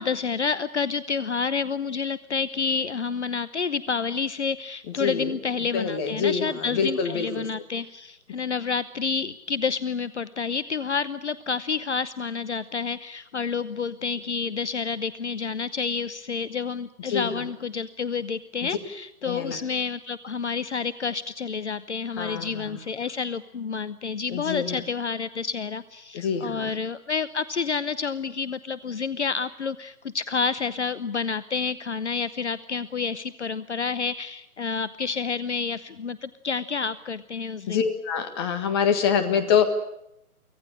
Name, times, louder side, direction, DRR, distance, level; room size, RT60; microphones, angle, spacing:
voice 1, 0.0-37.8, left 5 dB, 50° left, 16 dB, 0.9 m, -29 dB
voice 2, 4.9-5.3 5.7-7.5 17.1-17.4 19.2-19.6 22.2-22.8 24.3-24.8 26.1-26.7 37.7-39.7, left 6 dB, 15° left, 9 dB, 1.6 m, -26 dB
24.5 x 17.0 x 9.9 m, 0.81 s
figure-of-eight pair, 150°, 44 cm